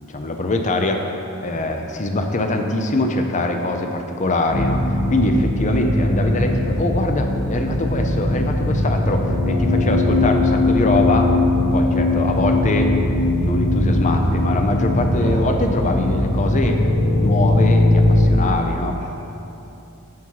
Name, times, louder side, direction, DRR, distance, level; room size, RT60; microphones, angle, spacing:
voice 1, 0.1-1.0 1.4-4.8 5.1-11.3 11.7-12.9 13.4-16.8 17.2-19.0, left 2 dB, 35° left, 4 dB, 0.6 m, -23 dB
sound 1, 4.5-18.3, left 1 dB, 90° left, 1.2 m, -19 dB
voice 2, 14.1-14.6 15.1-15.4 19.0-19.1, equal, 80° right, -11 dB, 1.8 m, -34 dB
9.5 x 6.0 x 4.6 m, 2.8 s
head